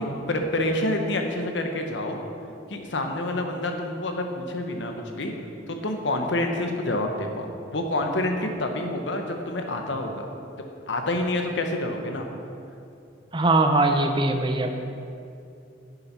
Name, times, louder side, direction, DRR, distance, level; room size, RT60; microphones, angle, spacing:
voice 1, 0.0-2.2 2.7-5.3 5.7-10.3 10.9-12.3, left 1 dB, 85° left, 4 dB, 1.0 m, -28 dB
voice 2, 13.3-14.8, right 2 dB, 25° right, 5 dB, 0.6 m, -21 dB
8.0 x 7.2 x 5.5 m, 2.6 s
head